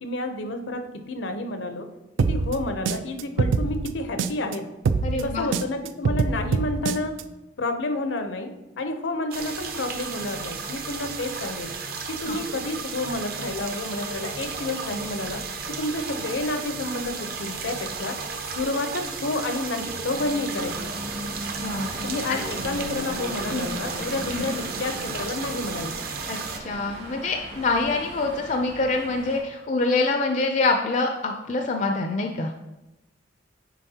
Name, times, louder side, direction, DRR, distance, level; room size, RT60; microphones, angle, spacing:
voice 1, 0.0-1.9 2.2-4.6 5.2-7.1 7.6-11.7 12.1-15.4 15.7-18.2 18.5-20.9 22.0-25.9, left 2 dB, 80° left, 7 dB, 0.6 m, -30 dB
sound 1, 2.2-4.5 4.8-7.2, right 4 dB, 90° right, 0.4 m, -25 dB
voice 2, 5.0-5.5 12.3-12.4 21.6-22.0 22.3-22.4 23.5-23.7 24.3-24.5 26.3-32.5, left 3 dB, 40° left, 4 dB, 0.4 m, -25 dB
sound 2, 9.3-26.6, right 5 dB, 55° right, 0.7 m, -34 dB
sound 3, 20.1-29.4, right 1 dB, 75° right, 2.2 m, -37 dB
9.2 x 4.2 x 2.8 m, 0.97 s
head